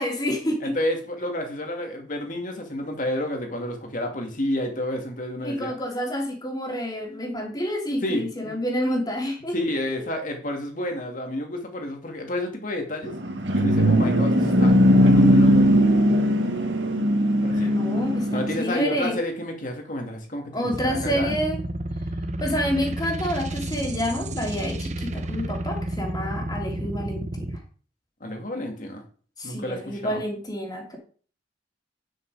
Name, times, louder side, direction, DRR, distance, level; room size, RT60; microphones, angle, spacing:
voice 1, 0.0-0.7 5.4-9.5 17.5-19.2 20.5-21.6 22.4-27.5 29.4-31.0, equal, 20° left, 1 dB, 3.1 m, -28 dB
voice 2, 0.6-5.7 8.0-8.6 9.5-13.2 13.6-15.7 17.4-17.7 18.3-21.4 28.2-29.0 29.4-30.2, left 1 dB, 45° left, 3 dB, 2.7 m, -30 dB
sound 1, 13.0-18.6, equal, 85° right, 2.0 m, -19 dB
sound 2, 20.7-27.6, right 1 dB, 40° right, 1.0 m, -31 dB
9.4 x 7.8 x 5.0 m, 0.42 s
head